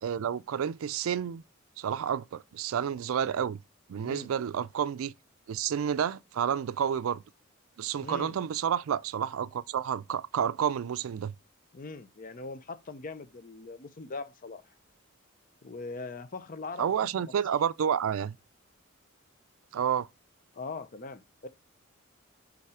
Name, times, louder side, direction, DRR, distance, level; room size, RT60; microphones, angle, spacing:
voice 1, 0.0-1.4 1.8-3.6 3.9-5.1 5.5-7.2 7.8-11.3 16.8-18.4 19.7-20.1, right 8 dB, 75° right, 0.4 m, -30 dB
voice 2, 8.0-8.4 11.7-14.6 15.6-16.9 17.2-17.3 20.5-21.5, left 3 dB, 40° left, 0.6 m, -41 dB
5.5 x 4.0 x 4.8 m
head